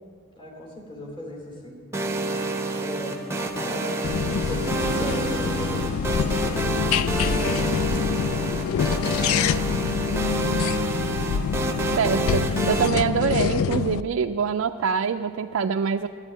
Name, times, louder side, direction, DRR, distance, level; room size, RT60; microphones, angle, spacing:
voice 1, 0.4-1.8 2.8-6.8, equal, 25° left, -1 dB, 2.6 m, -39 dB
sound 1, 1.9-12.9, right 2 dB, 10° right, 0.8 m, -28 dB
sound 2, 4.0-14.0, left 7 dB, 85° left, 0.3 m, -26 dB
Wind instrument woodwind instrument, 4.3-9.3, left 2 dB, 60° left, 2.3 m, -38 dB
voice 2, 12.0-16.1, right 6 dB, 65° right, 5 dB, 0.3 m, -24 dB
11.0 x 9.0 x 9.7 m, 2.2 s
head